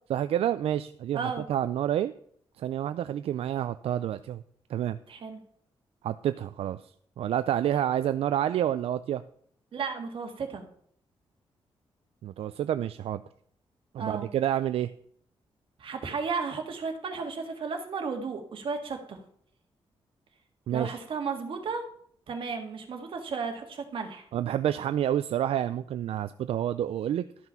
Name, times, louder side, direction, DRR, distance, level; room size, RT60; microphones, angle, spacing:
voice 1, 0.1-2.1 2.6-4.4 4.7-5.0 6.0-6.8 7.2-9.2 12.2-13.2 13.9-14.9 20.7-20.9 24.3-27.3, right 11 dB, 85° right, 12 dB, 0.4 m, -28 dB
voice 2, 5.1-5.4 9.7-10.6 14.0-14.3 15.8-19.2 20.7-21.9 22.3-24.3, right 5 dB, 65° right, 5 dB, 1.7 m, -34 dB
12.5 x 5.9 x 5.6 m, 0.63 s
wide cardioid pair, 140°, 10 cm